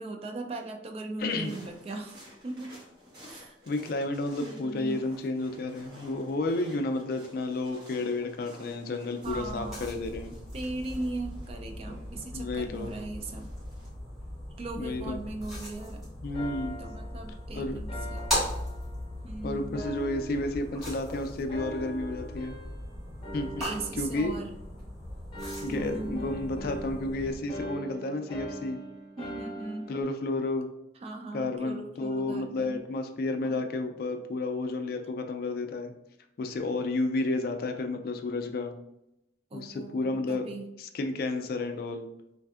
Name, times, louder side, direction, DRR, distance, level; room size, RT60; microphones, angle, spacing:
voice 1, 0.0-2.8 3.2-3.6 4.4-5.0 9.2-9.9 10.5-13.5 14.6-16.0 16.8-18.2 19.2-19.8 23.6-24.5 25.7-26.2 29.2-29.9 31.0-32.8 33.4-33.6 39.5-40.6, right 2 dB, 35° right, 3 dB, 0.3 m, -38 dB
voice 2, 1.2-1.6 3.7-10.3 12.3-12.9 14.8-15.2 16.2-16.7 17.5-17.8 19.4-22.6 23.3-23.6 24.0-24.4 25.6-28.8 29.9-30.7 31.3-35.9 36.4-38.7 39.5-40.5 40.8-42.1, left 2 dB, 55° left, 6 dB, 0.3 m, -31 dB
sound 1, 1.2-13.9, equal, 60° right, 1.3 m, -53 dB
sound 2, 9.2-27.4, equal, ahead, 1.4 m, -39 dB
sound 3, 16.3-19.3 19.7-21.1 21.5-22.9 23.2-24.9 25.3-30.0, right 1 dB, 25° left, 0.7 m, -42 dB
3.2 x 2.6 x 2.4 m, 0.82 s
head